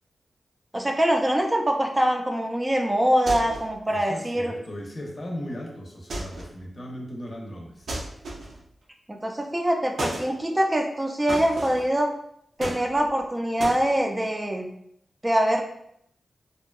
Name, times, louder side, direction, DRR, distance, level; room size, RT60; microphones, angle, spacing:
voice 1, 0.7-4.5 9.1-12.1 12.6-14.7 15.2-15.6, equal, 20° right, 2 dB, 0.3 m, -24 dB
sound 1, 3.3-3.8 6.1-6.6 7.9-8.7 10.0-10.3 11.3-11.9 12.6-13.2 13.6-13.8, right 1 dB, 85° right, 0.5 m, -33 dB
voice 2, 3.9-7.9, equal, 45° left, 0 dB, 0.6 m, -37 dB
2.6 x 2.2 x 2.3 m, 0.73 s
cardioid pair, 65°, 0 cm